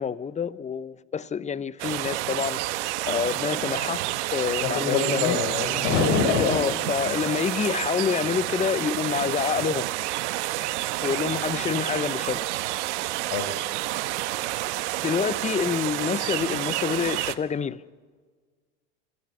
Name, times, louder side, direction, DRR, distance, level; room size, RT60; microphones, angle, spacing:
voice 1, 0.0-4.0 4.3-5.4 6.3-9.9 11.0-12.5 15.0-17.8, left 7 dB, 20° left, 0.7 m, -27 dB
sound 1, 1.8-17.4, right 17 dB, 70° right, 1.1 m, -29 dB
voice 2, 4.6-6.6 7.0-7.1 10.8-10.9 13.3-13.5, left 5 dB, 65° left, 6.3 m, -25 dB
27.0 x 13.5 x 8.2 m
hypercardioid pair, 85°, 36 cm